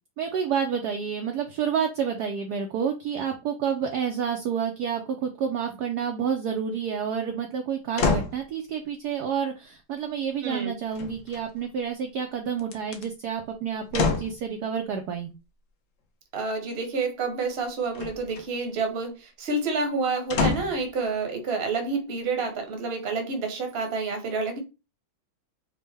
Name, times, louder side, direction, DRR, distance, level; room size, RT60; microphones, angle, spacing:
voice 1, 0.2-15.3, right 7 dB, 70° right, 3 dB, 1.0 m, -29 dB
sound 1, 8.0-8.4 10.9-11.7 12.6-13.0 13.9-14.4 17.9-18.5 20.3-20.9 21.5-21.6, left 4 dB, 60° left, 0.8 m, -27 dB
voice 2, 10.4-10.7 16.3-24.6, right 4 dB, 40° right, 5 dB, 1.0 m, -29 dB
5.3 x 2.2 x 3.3 m, 0.28 s
omnidirectional pair, 2.2 m